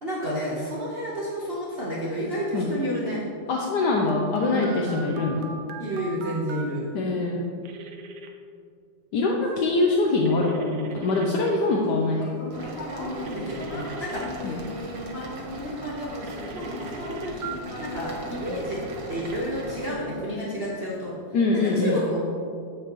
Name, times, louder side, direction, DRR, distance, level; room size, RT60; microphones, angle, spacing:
voice 1, 0.0-3.2 4.4-5.2 5.8-6.9 12.9-14.2 16.5-17.5 17.8-18.8 19.1-21.1 21.6-22.2, equal, 40° right, -6 dB, 1.0 m, -30 dB
voice 2, 3.5-5.5 6.9-7.4 9.1-12.3 14.4-14.5 21.3-22.1, left 3 dB, 70° left, -1 dB, 1.2 m, -24 dB
Telephone, 4.1-6.6 7.6-8.3 10.3-11.3 13.3-14.3 16.3-17.6, right 2 dB, 80° right, 1.5 m, -40 dB
Human voice, 11.8-19.1 19.7-21.1, left 1 dB, 90° left, 2.2 m, -38 dB
sound 1, 12.5-19.9, right 2 dB, 55° right, 1.3 m, -39 dB
8.8 x 7.8 x 3.0 m, 2.3 s
omnidirectional pair, 2.1 m